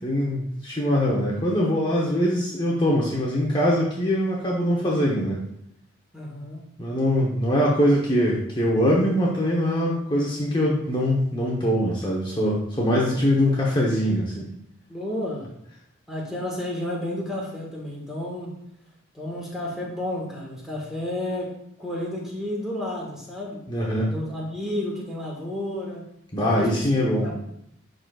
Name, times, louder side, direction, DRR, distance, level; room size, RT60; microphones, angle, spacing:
voice 1, 0.0-5.4 6.8-14.5 23.7-24.1 26.3-27.3, equal, 25° left, -4 dB, 0.9 m, -22 dB
voice 2, 6.1-6.7 13.0-13.4 14.9-15.5 16.1-18.6 19.1-23.6 24.1-26.1 26.4-26.9 27.2-27.4, left 1 dB, 5° right, -4 dB, 1.5 m, -32 dB
11.0 x 3.9 x 2.3 m, 0.73 s
head